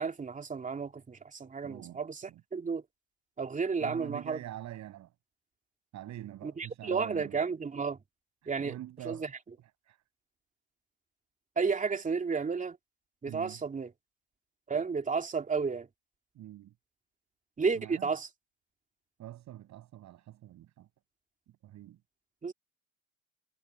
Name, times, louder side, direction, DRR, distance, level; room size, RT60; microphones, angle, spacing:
voice 1, 0.0-2.8 3.4-4.4 6.4-8.0 8.5-8.7 9.1-9.3 11.6-12.8 13.2-13.9 14.7-15.9 17.6-18.3 22.4-22.5, right 5 dB, 20° right, 2.7 m, -32 dB
voice 2, 1.6-2.0 2.3-2.4 3.8-5.1 5.9-7.4 8.4-9.3 9.9-10.0 13.3-13.6 16.3-16.7 17.7-18.1 19.2-20.9 21.6-22.0, right 13 dB, 50° right, 6.8 m, -45 dB
hypercardioid pair, 90°, 37 cm